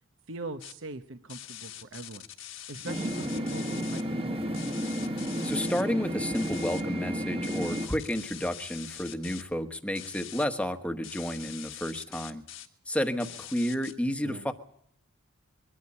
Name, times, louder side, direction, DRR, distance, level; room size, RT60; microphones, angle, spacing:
voice 1, 0.3-2.3 2.7-4.8 14.2-14.5, right 2 dB, 65° right, 8 dB, 1.0 m, -41 dB
sound 1, 0.6-0.7 1.3-4.0 4.5-5.8 6.3-6.8 7.4-9.4 10.0-10.5 11.0-12.7 13.2-13.9, left 11 dB, 60° left, 1.6 m, -44 dB
sound 2, 2.9-7.9, equal, 25° right, 1.4 m, -32 dB
voice 2, 5.4-12.4 12.9-14.5, equal, 5° left, 7 dB, 1.1 m, -31 dB
23.0 x 13.0 x 9.8 m, 0.69 s
head